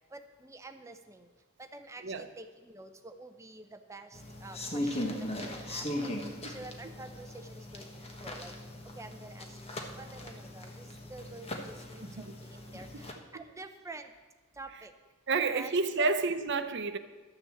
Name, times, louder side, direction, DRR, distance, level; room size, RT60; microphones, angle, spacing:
voice 1, 0.1-1.3 1.6-6.2 6.5-7.9 8.2-8.5 9.0-9.6 10.0-14.1 14.6-14.9 15.3-16.1, right 2 dB, 15° right, 7 dB, 0.6 m, -48 dB
sound 1, 4.1-13.1, left 1 dB, 30° left, 1.2 m, -39 dB
voice 2, 12.0-12.3 15.3-17.0, right 4 dB, 55° right, 9 dB, 0.7 m, -30 dB
12.0 x 6.7 x 7.2 m, 1.2 s
head